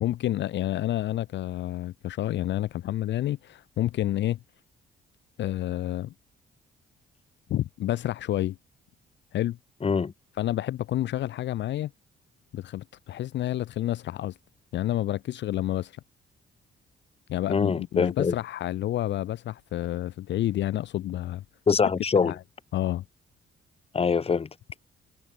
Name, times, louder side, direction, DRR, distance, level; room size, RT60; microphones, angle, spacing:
voice 1, 0.0-4.4 5.4-6.1 7.5-8.6 9.3-9.6 10.4-11.9 12.5-14.4 14.7-16.0 17.3-21.4 22.1-22.4 22.7-23.0, left 13 dB, 65° left, 0.6 m, -29 dB
voice 2, 9.8-10.1 17.5-18.3 21.7-22.3 23.9-24.5, left 5 dB, 30° left, 1.0 m, -24 dB
cardioid pair, 90°, 20 cm